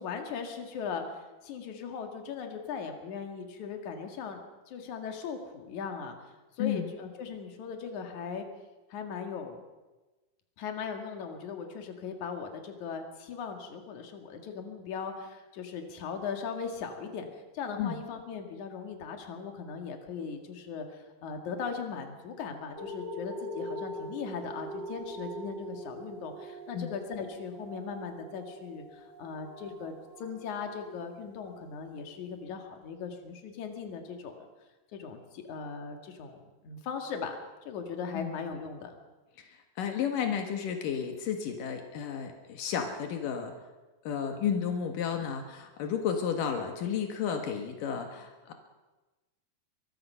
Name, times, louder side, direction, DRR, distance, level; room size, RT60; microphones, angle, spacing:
voice 1, 0.0-6.2 6.6-8.5 8.9-9.6 10.6-34.5 34.9-37.4 37.7-39.0, left 6 dB, 65° left, 4 dB, 3.3 m, -39 dB
voice 2, 6.6-6.9 17.8-18.0 26.7-26.9 38.1-38.4 39.8-43.5 44.0-48.5, left 7 dB, 85° left, 4 dB, 3.2 m, -32 dB
sound 1, 22.8-31.7 32.3-32.4, equal, 35° right, 2.4 m, -43 dB
23.5 x 22.0 x 5.7 m, 1.2 s
omnidirectional pair, 3.7 m